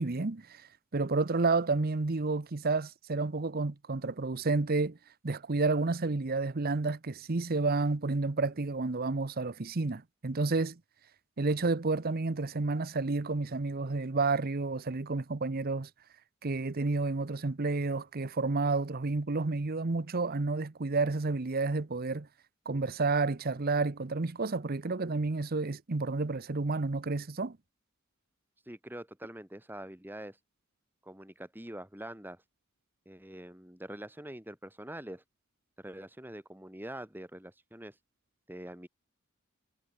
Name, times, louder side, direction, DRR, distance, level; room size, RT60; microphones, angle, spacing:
voice 1, 0.0-5.0 5.2-10.8 11.4-15.9 16.4-22.3 22.7-27.6, right 3 dB, 45° right, 0.8 m, -30 dB
voice 2, 28.7-30.4 31.0-32.4 33.1-35.2 35.8-38.0 38.5-38.9, right 1 dB, 10° right, 2.7 m, -44 dB
head